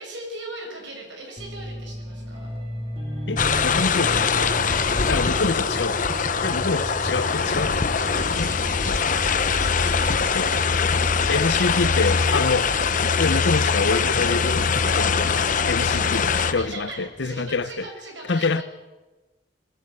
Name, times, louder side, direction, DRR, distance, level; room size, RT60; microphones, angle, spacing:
voice 1, 0.0-2.5 6.5-7.4 8.0-11.4 16.5-18.6, right 1 dB, 80° right, 6.3 m, -40 dB
sound 1, 1.4-17.7, equal, 30° right, 3.8 m, -37 dB
voice 2, 3.3-4.5 5.1-6.2 6.4-7.8 8.4-8.5 8.9-9.0 10.3-10.5 11.3-12.7 13.2-17.9 18.3-18.6, left 3 dB, 70° left, 0.8 m, -26 dB
sound 2, 3.4-16.5, left 5 dB, 45° left, 0.9 m, -22 dB
21.0 x 15.0 x 9.0 m
head